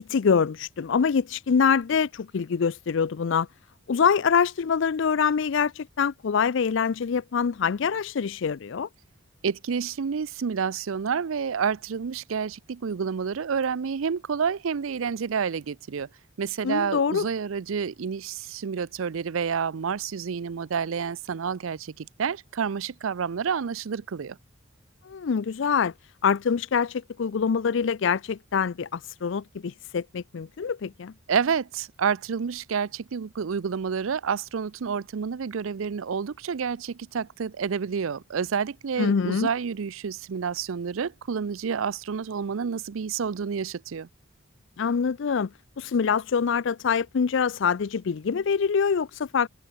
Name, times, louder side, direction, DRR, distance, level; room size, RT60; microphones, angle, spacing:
voice 1, 0.1-3.5 3.9-8.9 16.6-17.3 25.0-25.9 26.2-31.1 39.0-39.5 44.8-45.5 45.8-49.5, left 6 dB, 60° left, 0.4 m, -25 dB
voice 2, 9.4-16.1 16.4-24.4 31.3-44.1, right 6 dB, 75° right, 0.5 m, -29 dB
head